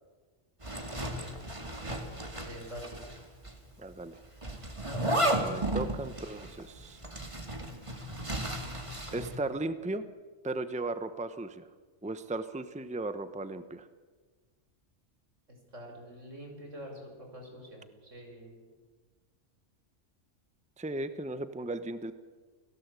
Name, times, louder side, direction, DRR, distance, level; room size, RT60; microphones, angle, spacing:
Zipper (clothing), 0.6-3.2 3.4-3.5 4.4-9.4, right 1 dB, 25° right, 2.5 m, -34 dB
voice 1, 1.0-1.3 1.7-2.1 2.4-3.0 15.5-18.7, equal, 80° right, 2 dB, 6.3 m, -46 dB
voice 2, 3.8-4.2 5.4-7.0 9.1-10.0 10.4-11.7 12.0-13.9 20.8-22.1, right 2 dB, 5° right, 11 dB, 0.9 m, -36 dB
29.0 x 17.0 x 8.3 m, 1.4 s
omnidirectional pair, 1.3 m